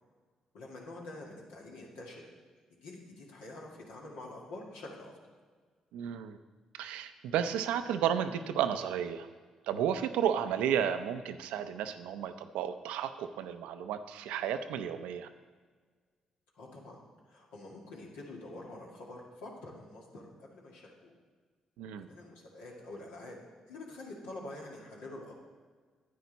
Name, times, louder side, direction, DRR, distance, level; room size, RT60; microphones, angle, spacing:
voice 1, 0.5-2.2 2.8-5.1 16.5-17.0 17.3-21.1 22.1-23.4 23.7-25.4, left 2 dB, 85° left, -3 dB, 2.0 m, -46 dB
voice 2, 5.9-6.4 6.7-9.3 9.6-15.3 21.8-22.1, right 9 dB, 85° right, 9 dB, 0.5 m, -32 dB
9.6 x 9.2 x 4.0 m, 1.5 s
supercardioid pair, 55°, 2 cm